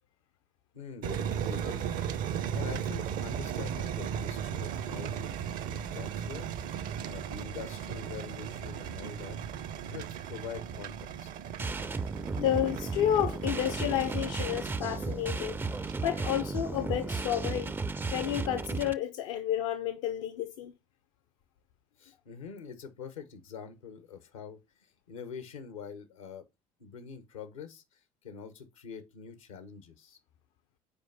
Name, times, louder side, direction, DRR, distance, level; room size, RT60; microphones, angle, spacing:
voice 1, 0.7-1.9 2.5-5.4 5.8-6.5 7.0-9.4 9.8-11.3 22.0-26.5 26.8-27.8 28.2-30.2, left 6 dB, 85° left, 1.1 m, -44 dB
sound 1, 1.0-15.9, right 8 dB, 55° right, 0.7 m, -37 dB
sound 2, 11.6-18.9, right 3 dB, 15° right, 0.4 m, -34 dB
voice 2, 12.4-17.7 18.1-20.7, left 11 dB, 70° left, 0.7 m, -31 dB
5.3 x 4.7 x 5.3 m
hypercardioid pair, 65°, 17 cm